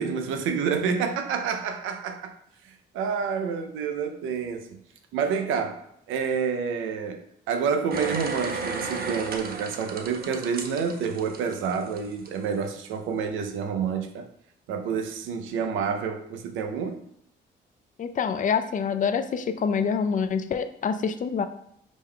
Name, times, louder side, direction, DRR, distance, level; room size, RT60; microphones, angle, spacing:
voice 1, 0.0-2.3 2.7-4.7 5.1-7.2 7.5-14.3 14.7-17.0, right 6 dB, 90° right, 6 dB, 0.5 m, -28 dB
sound 1, 7.9-12.3 12.7-12.8, right 4 dB, 50° right, 0.6 m, -34 dB
voice 2, 18.0-21.4, left 6 dB, 40° left, 10 dB, 0.4 m, -26 dB
5.0 x 2.2 x 3.6 m, 0.74 s
cardioid pair, 90°, 20 cm